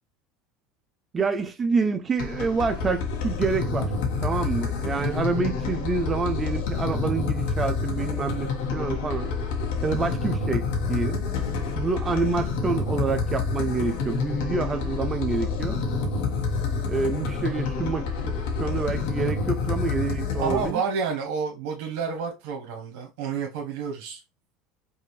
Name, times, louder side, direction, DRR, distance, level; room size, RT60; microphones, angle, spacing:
voice 1, 1.1-3.9 4.2-9.3 9.8-11.2 11.8-15.8 16.9-18.3 18.6-20.8, right 4 dB, 20° right, 0.4 m, -27 dB
sound 1, 2.2-20.7, left 4 dB, 70° left, 1.3 m, -28 dB
voice 2, 4.9-5.2 20.3-24.2, right 6 dB, 75° right, 1.1 m, -30 dB
5.3 x 2.5 x 3.1 m
cardioid pair, 160°, 0 cm